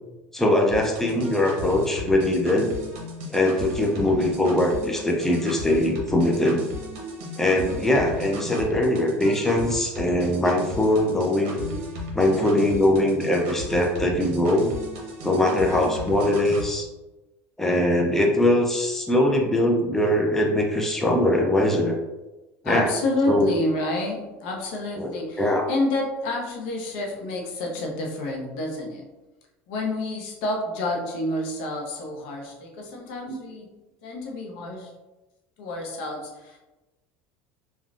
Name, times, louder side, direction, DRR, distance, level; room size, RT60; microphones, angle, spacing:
voice 1, 0.3-2.7 3.3-6.7 7.4-11.6 12.1-14.8 15.2-16.9 17.6-21.9 22.6-22.9 23.3-23.5 25.0-25.6 33.3-33.4, left 1 dB, 5° left, 0 dB, 0.5 m, -22 dB
sound 1, 0.7-16.7, left 1 dB, 70° right, 0.7 m, -36 dB
voice 2, 12.2-12.5 15.5-15.8 22.6-29.1 29.7-33.7 34.0-34.9 35.6-36.6, left 2 dB, 75° left, 0 dB, 0.7 m, -29 dB
3.2 x 2.3 x 2.4 m, 1.1 s
supercardioid pair, 100°, 6 cm